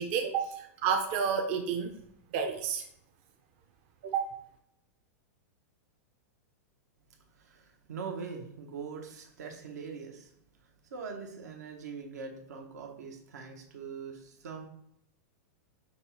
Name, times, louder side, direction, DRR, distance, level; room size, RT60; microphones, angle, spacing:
voice 1, 0.0-1.9 2.3-2.8 4.0-4.2, right 6 dB, 45° right, 4 dB, 0.4 m, -30 dB
voice 2, 7.3-10.3 10.8-14.7, right 5 dB, 90° right, 2 dB, 0.8 m, -42 dB
5.3 x 2.3 x 2.9 m, 0.72 s
supercardioid pair, 145°, 9 cm